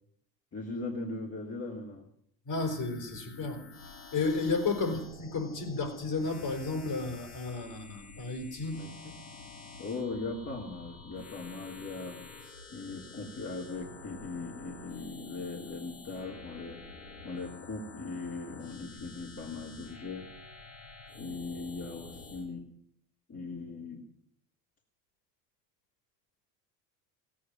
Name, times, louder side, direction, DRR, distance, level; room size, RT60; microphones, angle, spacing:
voice 1, 0.5-2.1 4.7-4.8 8.7-9.1 9.8-12.2 12.7-16.8 17.2-20.3 21.2-22.6 23.3-24.0, left 3 dB, 30° left, -1 dB, 3.2 m, -39 dB
sound 1, 2.5-22.5, left 3 dB, 70° left, 4.8 m, -49 dB
voice 2, 2.5-3.6 4.1-8.8, left 3 dB, 50° left, 5 dB, 5.2 m, -32 dB
17.0 x 8.9 x 9.4 m, 0.68 s
hypercardioid pair, 70°, 48 cm